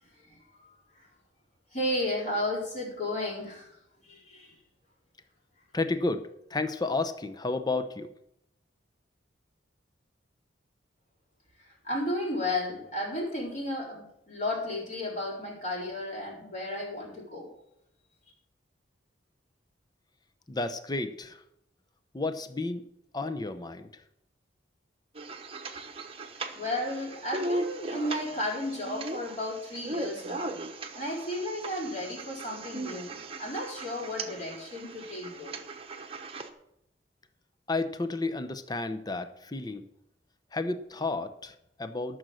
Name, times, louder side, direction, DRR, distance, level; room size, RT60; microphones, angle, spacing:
voice 1, 0.3-0.7 1.0-1.1 1.7-3.7 4.0-4.6 11.6-17.5 26.5-30.5 30.9-35.6, left 1 dB, 40° left, -4 dB, 4.5 m, -33 dB
voice 2, 5.7-8.1 20.5-21.4 22.1-22.8 23.1-23.9 37.7-39.8 40.5-42.2, left 3 dB, 20° left, 10 dB, 0.7 m, -32 dB
sound 1, 25.1-36.5, right 2 dB, 30° right, 1.0 m, -38 dB
13.5 x 6.4 x 6.3 m, 0.79 s
head